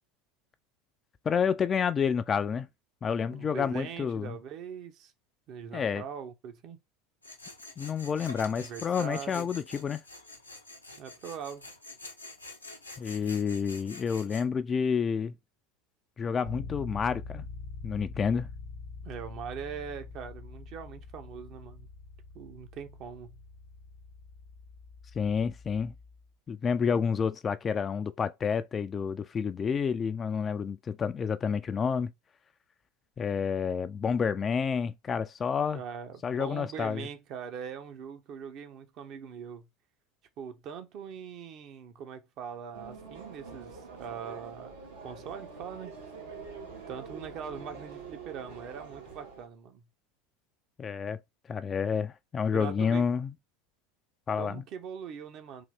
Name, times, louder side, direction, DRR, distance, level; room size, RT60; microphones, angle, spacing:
voice 1, 1.2-2.7 3.0-4.3 5.7-6.0 7.8-10.0 13.0-15.3 16.2-17.4 17.8-18.5 25.2-25.9 26.5-32.1 33.2-35.8 36.2-37.1 50.8-51.2 51.5-53.3 54.3-54.6, left 6 dB, 25° left, 0.3 m, -29 dB
voice 2, 3.3-5.1 5.5-6.8 8.6-9.5 11.0-11.7 19.0-21.9 22.3-23.4 35.7-39.7 40.4-44.8 45.0-45.9 46.9-49.8 52.5-53.0 54.4-55.6, right 7 dB, 45° right, 0.8 m, -41 dB
Tools, 7.2-14.5, left 2 dB, 90° left, 0.7 m, -47 dB
Bass guitar, 16.4-26.3, left 4 dB, 70° left, 1.0 m, -44 dB
sound 1, 42.7-49.5, right 5 dB, 75° right, 1.4 m, -45 dB
3.8 x 2.7 x 3.3 m
figure-of-eight pair, 75°, 0 cm